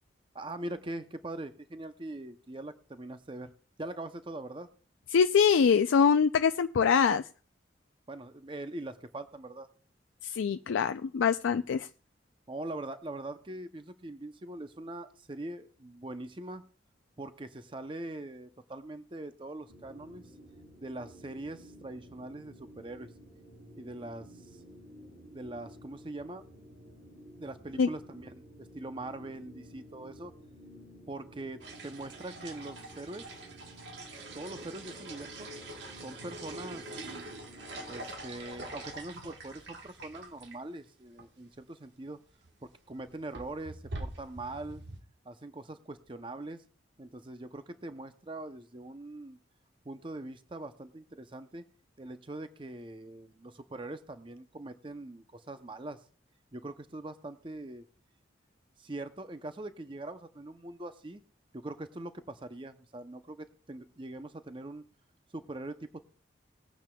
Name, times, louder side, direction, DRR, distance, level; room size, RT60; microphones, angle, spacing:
voice 1, 0.3-3.5 3.8-4.7 8.1-9.7 12.5-16.6 17.2-20.2 20.8-23.1 23.8-24.6 25.3-26.4 27.4-30.3 31.1-33.3 34.3-35.5 36.0-36.9 37.9-42.2 42.6-44.8 45.2-46.6 47.0-49.4 49.8-51.6 52.0-56.1 56.5-57.8 58.8-61.2 61.5-64.8 65.3-66.0, right 2 dB, 25° right, 9 dB, 0.6 m, -42 dB
voice 2, 5.1-7.2 10.2-11.9 27.8-27.9, left 6 dB, 90° left, 9 dB, 0.4 m, -24 dB
sound 1, 19.7-38.0, equal, 85° right, 6.2 m, -53 dB
sound 2, 31.6-40.6 40.9-41.0 41.2-41.3 42.3-42.5 42.9-45.0, right 2 dB, 70° right, 1.4 m, -44 dB
20.0 x 9.1 x 2.3 m, 0.42 s
head